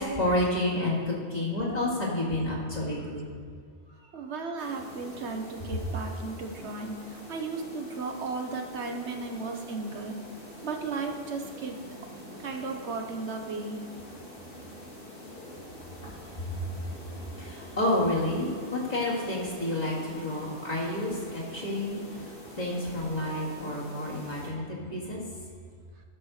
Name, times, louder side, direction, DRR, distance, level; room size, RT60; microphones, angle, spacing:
voice 1, 0.0-3.3 16.4-16.8 17.4-22.0 22.6-25.2, left 1 dB, 35° left, -6 dB, 2.4 m, -30 dB
voice 2, 4.1-10.2 10.6-11.8 12.0-12.1 12.4-13.8, right 4 dB, 70° right, 3 dB, 1.2 m, -35 dB
sound 1, 4.6-24.5, equal, 50° left, 2.2 m, -45 dB
13.0 x 4.3 x 6.4 m, 2.1 s
omnidirectional pair, 1.2 m